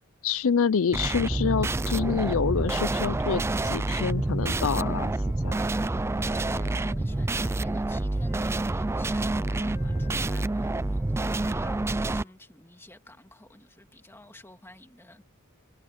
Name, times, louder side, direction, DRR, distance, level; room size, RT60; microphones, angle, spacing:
voice 1, 0.2-5.1 5.4-5.6, left 6 dB, 65° left, 0.5 m, -27 dB
sound 1, 0.9-12.2, right 2 dB, 10° right, 0.3 m, -28 dB
Wind instrument woodwind instrument, 3.8-12.3, left 4 dB, 35° left, 3.4 m, -53 dB
voice 2, 6.4-15.2, left 1 dB, 10° left, 2.1 m, -50 dB
head